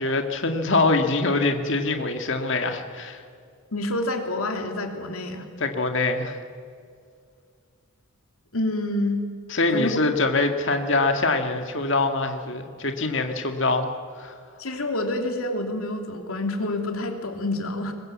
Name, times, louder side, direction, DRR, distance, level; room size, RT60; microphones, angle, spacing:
voice 1, 0.0-3.2 5.6-6.4 9.5-13.9 14.2-14.3, left 3 dB, 55° left, 5 dB, 1.8 m, -24 dB
voice 2, 3.7-5.5 8.5-9.2 9.7-10.0 14.6-17.9, left 1 dB, 75° left, 4 dB, 2.9 m, -27 dB
22.5 x 20.0 x 8.5 m, 2.2 s
head